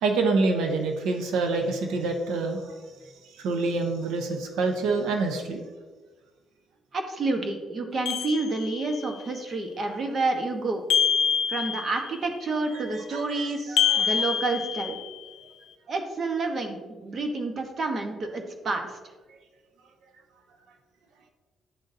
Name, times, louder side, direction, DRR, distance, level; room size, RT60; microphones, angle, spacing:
voice 1, 0.0-2.8 3.3-5.6 12.7-12.8 13.1-14.3, right 3 dB, 85° right, 4 dB, 0.7 m, -27 dB
voice 2, 6.9-10.8 11.5-15.0 15.9-19.0, right 3 dB, 45° right, 4 dB, 1.1 m, -29 dB
sound 1, 8.0-9.1 10.9-12.2 13.8-15.3, left 8 dB, 80° left, 0.4 m, -26 dB
10.5 x 3.8 x 2.6 m, 1.3 s
cardioid pair, 90°, 0 cm